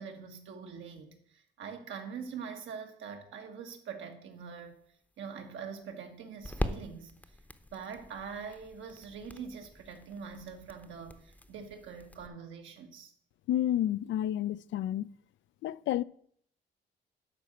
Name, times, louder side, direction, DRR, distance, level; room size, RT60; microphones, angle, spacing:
voice 1, 0.0-4.8 5.2-7.1 7.7-13.1, right 6 dB, 80° right, 1.6 m, -44 dB
sound 1, 4.4-12.3, left 1 dB, 5° left, 0.7 m, -42 dB
voice 2, 13.5-15.1 15.6-16.0, left 12 dB, 70° left, 0.4 m, -30 dB
11.5 x 4.0 x 6.7 m
cardioid pair, 90°, 20 cm